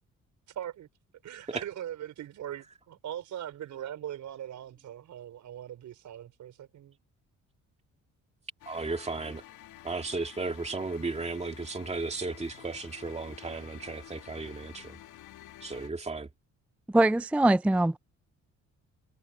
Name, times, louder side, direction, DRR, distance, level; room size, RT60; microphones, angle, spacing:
voice 1, 0.5-0.9 1.2-7.0, right 11 dB, 75° right, 5.4 m, -40 dB
sound 1, 8.6-15.9, left 13 dB, 85° left, 2.4 m, -50 dB
voice 2, 8.7-9.4 9.8-15.0 15.6-16.3, right 3 dB, 20° right, 2.3 m, -35 dB
voice 3, 16.9-18.0, right 1 dB, 5° right, 0.4 m, -22 dB
cardioid pair, 90°, 30 cm